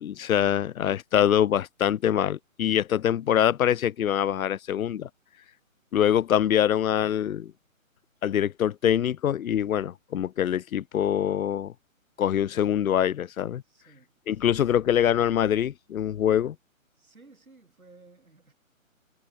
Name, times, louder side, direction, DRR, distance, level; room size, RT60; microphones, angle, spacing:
voice 1, 0.0-5.1 5.9-7.5 8.2-11.7 12.2-13.6 14.3-16.6, left 10 dB, 80° left, 0.5 m, -24 dB
voice 2, 13.6-14.7 17.0-18.5, right 3 dB, 90° right, 8.0 m, -56 dB
figure-of-eight pair, 155°, 41 cm